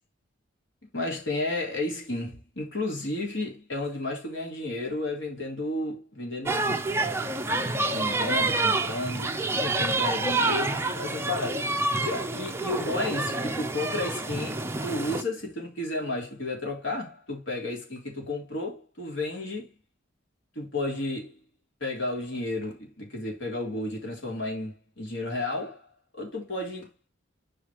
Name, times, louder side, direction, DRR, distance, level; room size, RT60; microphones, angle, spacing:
voice 1, 0.9-6.9 7.9-9.3 9.6-11.7 12.0-19.7 20.5-21.4 21.8-25.8 26.1-26.9, left 2 dB, 75° left, 3.4 m, -32 dB
sound 1, 6.5-15.2, right 2 dB, 10° right, 0.6 m, -28 dB
8.2 x 4.9 x 3.0 m
head